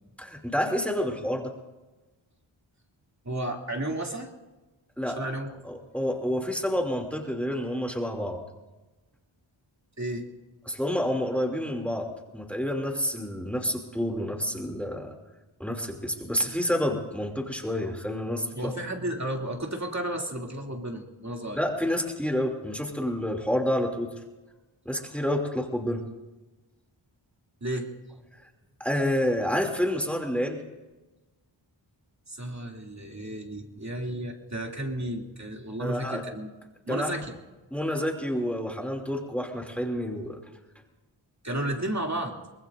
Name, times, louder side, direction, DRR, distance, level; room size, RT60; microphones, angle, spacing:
voice 1, 0.2-1.5 5.0-5.2 5.6-8.4 10.7-12.1 12.3-15.1 15.6-18.7 21.6-24.1 24.8-26.0 28.8-30.6 35.8-36.2 36.9-37.1 37.7-40.4, equal, 5° left, 2 dB, 2.7 m, -29 dB
voice 2, 3.2-4.3 5.2-5.5 10.0-10.3 18.5-21.6 27.6-27.9 32.3-36.5 36.9-37.3 37.8-38.0 41.4-42.4, right 1 dB, 35° right, 1 dB, 2.7 m, -33 dB
24.0 x 20.0 x 2.6 m, 1.1 s
cardioid pair, 50°, 48 cm